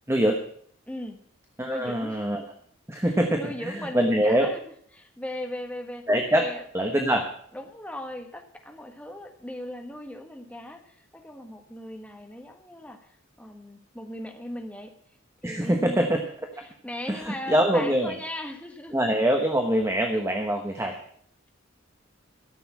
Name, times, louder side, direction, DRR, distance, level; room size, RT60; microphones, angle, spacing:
voice 1, 0.1-0.4 1.6-2.4 2.9-4.5 6.1-6.5 6.7-7.2 15.4-16.2 17.1-18.2 18.9-21.0, right 1 dB, 15° right, 3 dB, 1.0 m, -24 dB
voice 2, 0.9-1.2 1.7-2.2 3.1-4.6 4.9-6.1 6.3-6.6 6.9-7.2 7.5-14.9 15.4-16.1 16.6-19.0, left 1 dB, 5° left, 4 dB, 1.4 m, -38 dB
13.0 x 6.9 x 8.4 m, 0.63 s
head